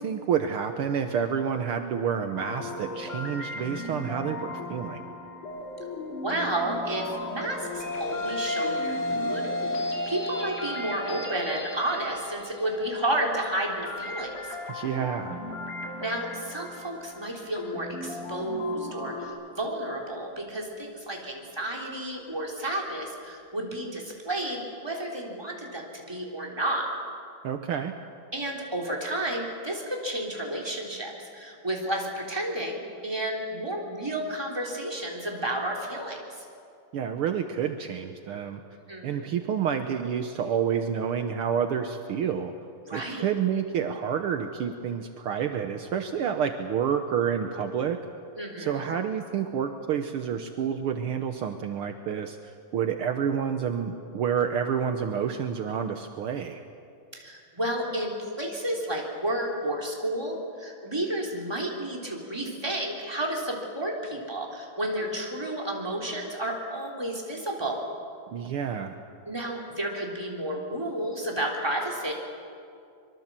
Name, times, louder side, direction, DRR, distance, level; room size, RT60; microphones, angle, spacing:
voice 1, 0.0-5.0 14.7-15.4 27.4-27.9 36.9-38.6 39.0-42.5 42.9-48.0 48.6-56.6 68.3-69.0, right 8 dB, 75° right, 6 dB, 1.2 m, -29 dB
sound 1, 2.4-13.3 13.8-19.3, left 2 dB, 70° left, 4.4 m, -38 dB
voice 2, 6.2-14.5 16.0-26.9 28.3-36.5 38.7-39.3 42.9-43.2 48.4-48.9 57.1-67.8 69.3-72.1, right 1 dB, 10° right, -1 dB, 3.2 m, -31 dB
sound 2, 7.4-16.5, left 1 dB, 30° left, 1.4 m, -34 dB
24.5 x 23.5 x 7.5 m, 2.4 s
omnidirectional pair, 3.8 m